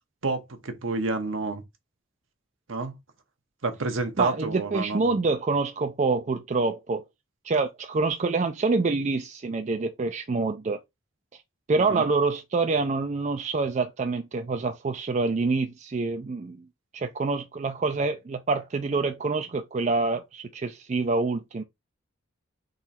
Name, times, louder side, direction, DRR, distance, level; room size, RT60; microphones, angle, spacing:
voice 1, 0.2-1.6 2.7-2.9 3.6-5.0 11.9-12.1, right 3 dB, 65° right, 0.9 m, -29 dB
voice 2, 4.2-7.0 7.4-10.8 11.7-16.6 16.9-21.6, right 3 dB, 35° right, 0.4 m, -26 dB
3.8 x 3.0 x 4.2 m
head